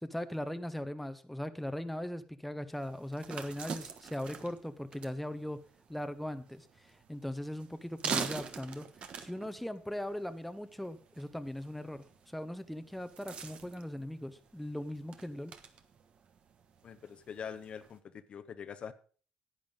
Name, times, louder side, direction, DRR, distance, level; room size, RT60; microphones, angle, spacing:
voice 1, 0.0-5.6 5.9-8.9 9.2-12.0 12.3-15.5, left 1 dB, 5° left, 10 dB, 0.9 m, -39 dB
sound 1, 2.7-18.0, right 6 dB, 55° right, 1.4 m, -45 dB
voice 2, 16.8-18.0 18.3-18.9, left 7 dB, 50° left, 11 dB, 0.9 m, -43 dB
11.0 x 8.7 x 5.2 m, 0.41 s
cardioid pair, 90°, 2 cm